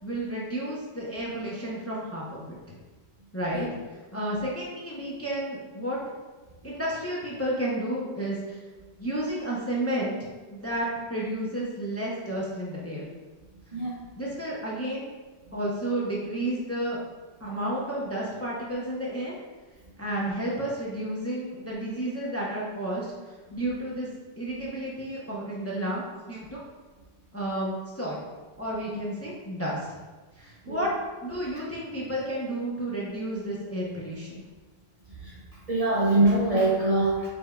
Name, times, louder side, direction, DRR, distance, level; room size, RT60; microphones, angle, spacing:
voice 1, 0.0-2.8 3.3-3.7 4.1-6.0 6.6-8.6 9.0-10.2 10.5-13.1 14.2-15.1 15.5-17.0 17.4-19.3 20.0-24.1 24.4-26.6 27.3-28.2 28.6-30.0 30.4-30.9 31.2-34.3, right 1 dB, 20° left, -5 dB, 0.5 m, -31 dB
voice 2, 35.7-37.3, right 2 dB, 45° right, -5 dB, 0.5 m, -23 dB
5.2 x 3.4 x 2.3 m, 1.3 s
omnidirectional pair, 1.1 m